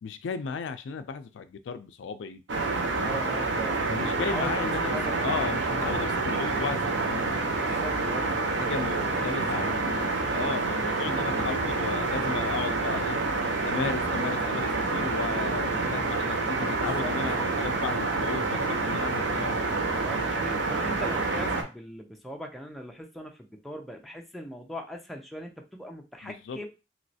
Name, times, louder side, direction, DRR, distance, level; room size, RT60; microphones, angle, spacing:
voice 1, 0.0-2.4 2.9-3.3 3.9-7.3 8.7-13.2 13.6-19.7 26.2-26.6, left 5 dB, 85° left, 0.4 m, -35 dB
sound 1, 2.5-21.6, right 3 dB, 90° right, 0.7 m, -28 dB
voice 2, 3.0-5.5 7.5-9.8 16.8-17.1 20.0-26.7, equal, ahead, 0.5 m, -40 dB
3.0 x 3.0 x 2.7 m
head